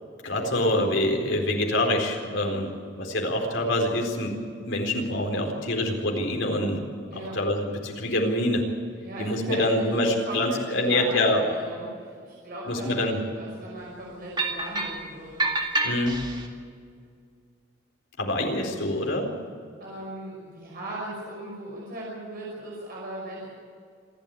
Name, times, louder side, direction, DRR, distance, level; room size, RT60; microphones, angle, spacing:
voice 1, 0.2-2.7 3.0-4.4 4.6-6.8 7.1-8.6 9.2-11.4 12.7-13.2 15.8-16.2 18.2-19.3, left 1 dB, 75° left, 2 dB, 4.3 m, -25 dB
voice 2, 9.0-15.5 19.8-23.5, right 1 dB, 50° right, -4 dB, 5.7 m, -38 dB
sound 1, 14.4-15.0 15.4-16.5, right 2 dB, 25° right, 2.2 m, -27 dB
27.0 x 12.5 x 8.6 m, 2.2 s
head